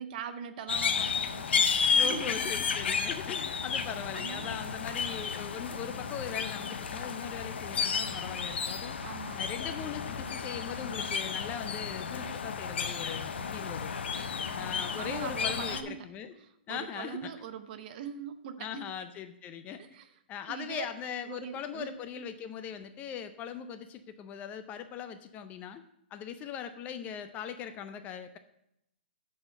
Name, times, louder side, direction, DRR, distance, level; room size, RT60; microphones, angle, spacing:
voice 1, 0.0-2.5 3.5-3.8 4.1-4.6 9.0-9.4 14.6-16.1 16.4-18.9 19.8-20.1 20.5-20.9 21.3-22.0, right 8 dB, 50° right, 10 dB, 0.7 m, -42 dB
sound 1, 0.7-15.8, left 6 dB, 80° left, 0.7 m, -32 dB
voice 2, 1.9-9.0 9.4-13.9 14.5-16.3 16.7-17.3 18.6-19.8 20.3-25.8 26.1-28.4, left 8 dB, 25° left, 9 dB, 0.5 m, -40 dB
7.9 x 4.2 x 6.4 m, 0.79 s
hypercardioid pair, 135°, 6 cm